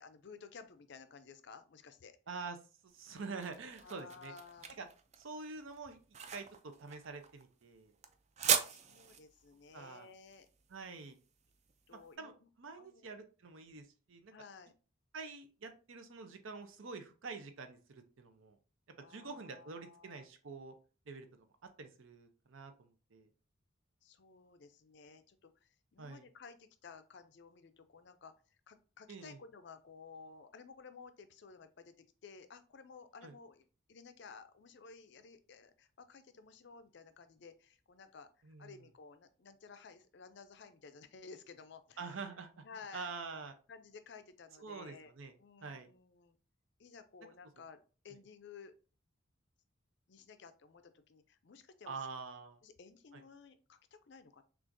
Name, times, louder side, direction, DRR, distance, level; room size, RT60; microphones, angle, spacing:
voice 1, 0.0-2.2 3.8-4.7 8.7-10.5 11.9-12.5 12.8-13.2 14.3-14.7 19.0-20.3 24.0-38.3 38.6-42.3 42.6-43.1 43.7-45.1 45.4-46.4 46.8-47.8 48.0-48.7 50.1-52.1 52.6-54.4, left 5 dB, 55° left, 10 dB, 0.4 m, -55 dB
voice 2, 2.3-2.6 2.8-4.3 4.8-4.9 5.2-6.0 6.3-7.9 9.7-10.1 10.7-11.2 11.9-14.3 15.1-18.6 19.1-20.7 21.1-21.3 21.8-23.3 26.0-26.2 29.1-29.4 33.2-33.3 38.4-38.9 42.0-42.6 42.9-43.5 44.6-45.3 45.6-45.9 51.9-52.6 53.1-53.2, right 4 dB, 70° right, 7 dB, 0.6 m, -46 dB
sound 1, 2.9-11.9, right 7 dB, 30° right, 0.3 m, -39 dB
6.1 x 2.5 x 2.6 m, 0.37 s
head